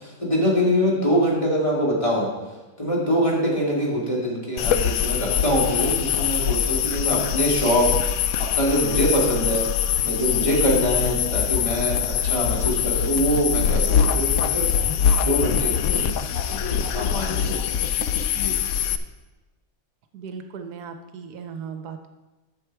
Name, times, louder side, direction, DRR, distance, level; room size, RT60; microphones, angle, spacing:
voice 1, 0.0-2.3 2.8-8.0 8.4-9.7 10.0-14.7 15.2-16.1 16.5-17.8 18.3-18.6, equal, 20° left, -5 dB, 2.4 m, -24 dB
sound 1, 4.6-19.0, left 8 dB, 70° left, 0.9 m, -23 dB
voice 2, 18.0-18.3 20.1-22.1, right 6 dB, 75° right, 7 dB, 1.3 m, -37 dB
11.0 x 6.8 x 4.6 m, 1.1 s
omnidirectional pair, 1.7 m